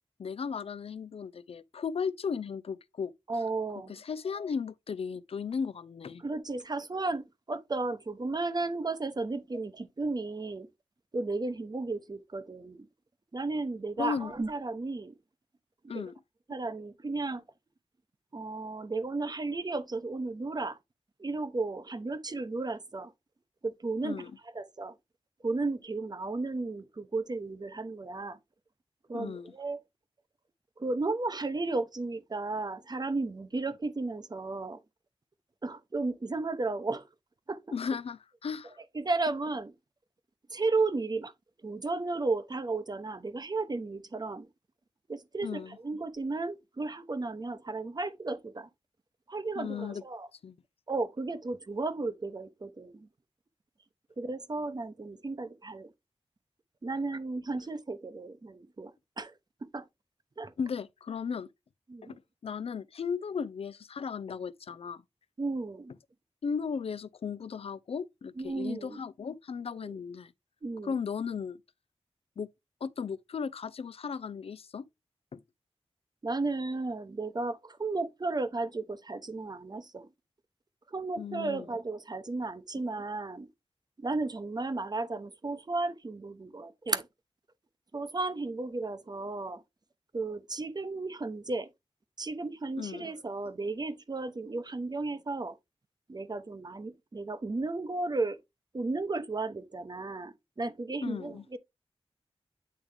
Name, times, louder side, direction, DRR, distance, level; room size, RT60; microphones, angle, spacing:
voice 1, 0.2-3.1 3.9-6.2 14.0-14.3 15.9-16.1 24.0-24.3 29.1-29.5 37.7-38.8 45.4-45.8 49.6-50.0 50.4-50.5 60.6-61.5 62.0-65.0 66.4-70.3 70.8-71.6 72.4-72.5 72.8-74.9 75.3-75.4 81.2-81.7 92.8-93.1 101.0-101.4, left 6 dB, 65° left, 0.5 m, -36 dB
voice 2, 3.3-3.9 6.2-10.7 11.1-12.9 13.3-15.1 15.9-16.1 16.5-17.4 18.3-20.8 21.2-23.1 23.6-24.3 24.5-24.9 25.4-28.4 29.1-29.8 30.8-34.8 35.6-37.1 37.5-37.6 38.9-39.7 40.5-41.3 41.6-44.5 45.1-48.7 49.3-50.3 50.9-53.1 54.2-55.9 56.8-58.9 59.2-59.3 59.7-59.8 60.4-60.5 61.9-62.2 65.4-65.9 68.4-69.0 69.8-70.0 70.6-71.0 76.2-80.1 80.9-83.5 84.0-87.1 87.9-89.6 90.1-91.7 92.2-95.6 96.1-98.4 98.7-101.6, right 3 dB, 40° right, 0.9 m, -34 dB
8.7 x 3.5 x 3.4 m
cardioid pair, 55°, 11 cm